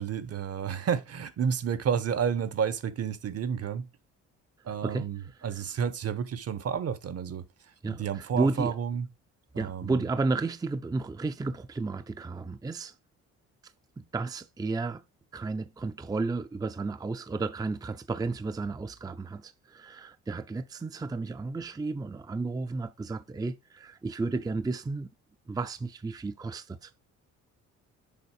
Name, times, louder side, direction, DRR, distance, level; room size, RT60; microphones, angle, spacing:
voice 1, 0.0-3.9 4.6-9.1 9.5-10.0, right 7 dB, 55° right, 1.0 m, -31 dB
voice 2, 7.8-8.8 9.6-12.9 14.0-15.0 15.3-25.1 25.5-26.9, right 3 dB, 15° right, 0.5 m, -32 dB
7.0 x 4.0 x 4.7 m
cardioid pair, 90°, 30 cm